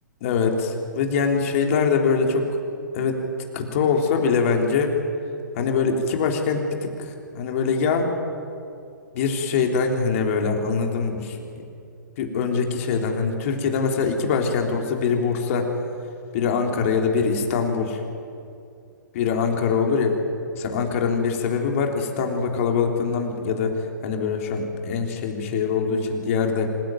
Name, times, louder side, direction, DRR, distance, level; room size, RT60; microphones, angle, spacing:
voice 1, 0.2-2.4 2.9-3.2 3.5-4.9 5.6-8.1 9.1-11.4 12.2-15.7 16.3-18.0 19.1-20.1 20.6-23.7 24.0-26.7, left 5 dB, 45° left, 2 dB, 3.8 m, -23 dB
26.5 x 16.0 x 9.3 m, 2.6 s
figure-of-eight pair, 115°, 10 cm